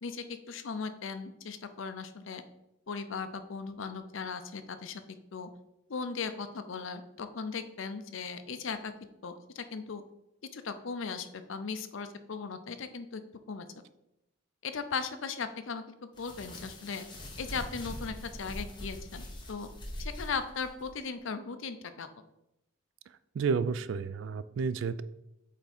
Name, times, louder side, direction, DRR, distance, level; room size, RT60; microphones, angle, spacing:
voice 1, 0.0-2.4 2.9-5.0 5.3-5.5 5.9-8.9 9.2-10.0 10.5-13.2 13.5-13.7 14.6-17.0 17.4-19.7 20.0-22.2, left 5 dB, 65° left, 9 dB, 0.5 m, -38 dB
sound 1, 16.1-20.9, left 1 dB, 20° left, 1.1 m, -43 dB
voice 2, 23.3-25.0, right 5 dB, 60° right, 15 dB, 0.3 m, -31 dB
8.3 x 3.5 x 4.2 m, 0.87 s
head